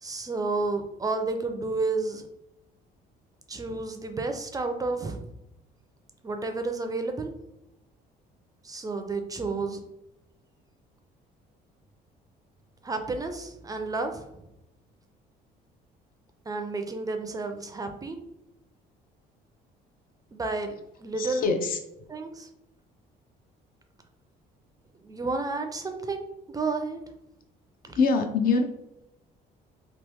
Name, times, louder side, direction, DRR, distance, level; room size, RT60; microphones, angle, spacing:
voice 1, 0.0-2.3 3.5-5.3 6.2-7.3 8.6-9.8 12.8-14.4 16.5-18.2 20.3-21.5 22.1-22.5 25.0-27.0 27.8-28.0, right 3 dB, 20° right, 6 dB, 0.4 m, -31 dB
voice 2, 21.1-21.8 27.9-28.6, left 4 dB, 60° left, 5 dB, 0.6 m, -24 dB
2.9 x 2.5 x 3.4 m, 0.87 s
cardioid pair, 110°, 17 cm